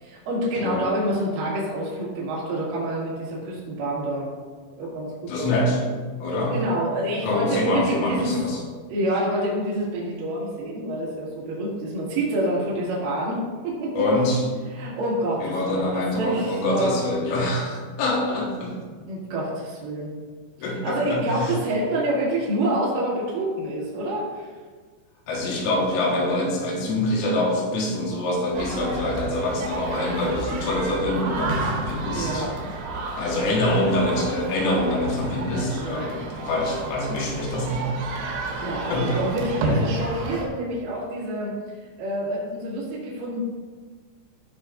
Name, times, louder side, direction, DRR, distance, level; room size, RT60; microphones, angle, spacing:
voice 1, 0.0-4.3 4.8-5.5 6.5-8.3 8.9-13.4 13.6-13.9 14.7-16.9 19.1-20.1 20.6-24.5 32.1-32.5 34.8-35.0 35.8-36.1 38.3-41.5 42.0-43.4, right 1 dB, 50° right, -8 dB, 3.4 m, -27 dB
voice 2, 5.3-5.8 6.2-6.6 7.2-8.6 13.9-14.5 15.4-18.8 20.6-21.5 25.3-32.5 33.2-38.0 38.9-39.3, left 1 dB, 85° left, -2 dB, 4.0 m, -25 dB
sound 1, 28.5-40.5, right 2 dB, 80° right, 3.8 m, -31 dB
16.0 x 5.6 x 2.5 m, 1.5 s
omnidirectional pair, 5.8 m